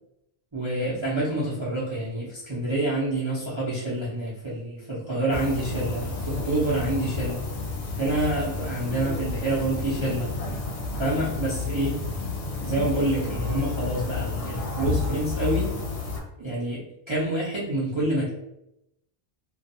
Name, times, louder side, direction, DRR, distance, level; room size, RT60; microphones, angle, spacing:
voice 1, 0.5-7.4 8.0-10.4 11.0-12.0 12.6-15.8 16.4-18.3, right 1 dB, 30° right, -9 dB, 0.6 m, -27 dB
sound 1, 5.3-16.2, left 4 dB, 70° left, 0.8 m, -31 dB
2.5 x 2.3 x 2.6 m, 0.84 s
omnidirectional pair, 1.2 m